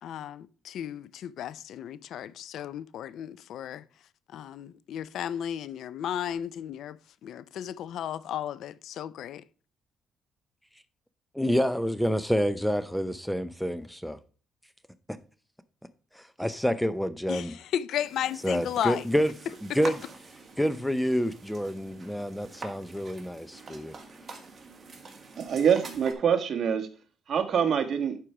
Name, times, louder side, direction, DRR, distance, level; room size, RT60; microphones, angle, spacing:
voice 1, 0.0-3.9 4.3-9.4 17.3-19.1 19.7-19.8, left 10 dB, 75° left, 0.5 m, -34 dB
voice 2, 11.3-14.2 16.1-17.5 18.4-19.3 19.7-20.0 20.6-23.9, equal, ahead, 0.7 m, -28 dB
sound 1, 18.0-26.1, right 4 dB, 40° right, 2.0 m, -45 dB
voice 3, 25.4-26.9 27.3-28.2, right 7 dB, 55° right, 1.4 m, -25 dB
11.5 x 4.5 x 4.9 m
cardioid pair, 90°, 0 cm